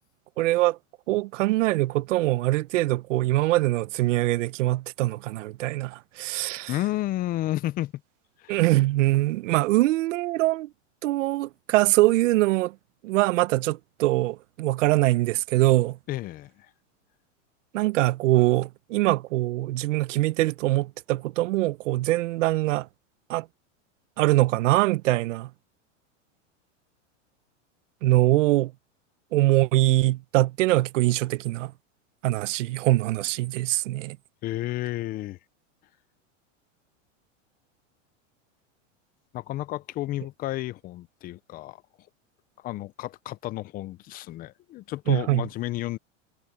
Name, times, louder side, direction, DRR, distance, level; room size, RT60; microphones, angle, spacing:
voice 1, 0.4-0.8 1.1-6.7 8.5-10.7 11.0-12.7 13.0-16.0 17.7-22.9 23.3-23.5 24.2-25.5 28.0-28.7 29.3-31.7 32.2-34.2 45.1-45.4, right 17 dB, 75° right, 0.8 m, -23 dB
voice 2, 6.7-7.9 8.4-8.6 16.1-16.7 34.4-35.4 39.3-41.8 42.6-46.0, left 15 dB, 25° left, 0.5 m, -31 dB
supercardioid pair, 135°, 38 cm